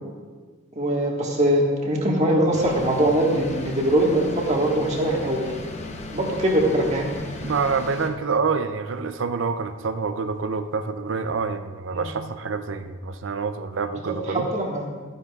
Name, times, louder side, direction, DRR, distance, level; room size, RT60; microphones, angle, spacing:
voice 1, 0.8-5.5 6.1-7.1 11.9-12.1 14.1-14.8, right 1 dB, 35° right, -1 dB, 1.6 m, -22 dB
sound 1, 2.5-8.1, left 2 dB, 35° left, 0.8 m, -36 dB
voice 2, 7.4-14.5, right 5 dB, 65° right, 9 dB, 0.5 m, -27 dB
13.5 x 9.8 x 2.4 m, 1.5 s
head